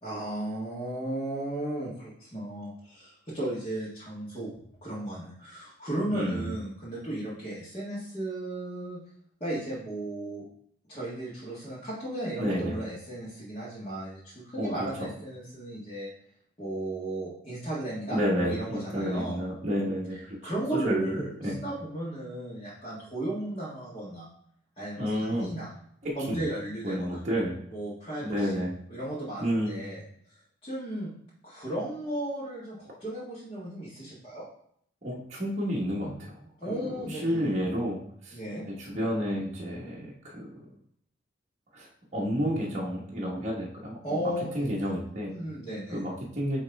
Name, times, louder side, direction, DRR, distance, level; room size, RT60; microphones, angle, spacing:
voice 1, 0.0-4.5 4.8-9.0 9.4-10.5 10.9-16.1 16.6-19.4 20.4-24.3 24.8-25.7 26.1-27.2 27.7-28.6 28.9-30.0 30.6-31.1 31.4-34.5 36.6-37.6 38.3-38.7 44.0-44.8 45.3-46.0, right 1 dB, 30° left, -10 dB, 1.5 m, -35 dB
voice 2, 6.1-6.6 12.4-12.8 14.6-14.7 15.0-15.1 18.1-21.1 21.4-21.6 25.0-25.5 26.0-26.4 26.8-27.6 28.2-28.7 29.4-29.8 35.0-38.4 38.7-40.7 41.7-45.3 45.9-46.6, equal, 35° right, -5 dB, 1.2 m, -31 dB
8.9 x 3.1 x 3.4 m, 0.67 s
head